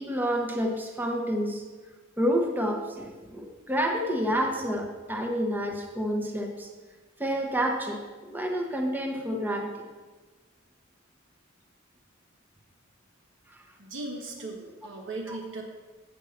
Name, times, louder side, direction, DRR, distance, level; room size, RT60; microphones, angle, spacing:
voice 1, 0.0-1.6 2.2-6.7 7.2-9.9 13.5-13.6 15.3-15.4, equal, 10° right, 1 dB, 0.9 m, -29 dB
voice 2, 13.8-15.6, right 2 dB, 65° right, 2 dB, 1.3 m, -37 dB
8.3 x 5.4 x 7.2 m, 1.3 s
head